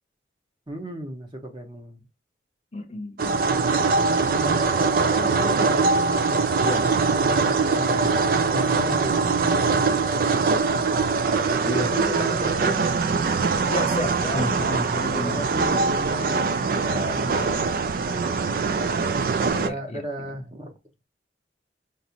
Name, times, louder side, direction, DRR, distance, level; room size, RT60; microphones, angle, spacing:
voice 1, 0.7-2.1 4.4-6.6 7.3-8.2 8.5-10.8 11.8-12.9 13.5-13.8 15.1-16.5 16.8-18.6 19.6-20.8, equal, 25° right, 0.9 m, -35 dB
voice 2, 2.7-3.3 6.6-6.9 8.0-8.1 11.6-12.9 13.7-15.4 17.3-17.6 19.5-20.0, left 1 dB, 35° left, 0.6 m, -31 dB
sound 1, 3.2-19.7, right 4 dB, 50° right, 0.3 m, -22 dB
Bowed string instrument, 6.9-11.1, left 2 dB, 70° right, 2.6 m, -45 dB
5.1 x 2.5 x 2.9 m
head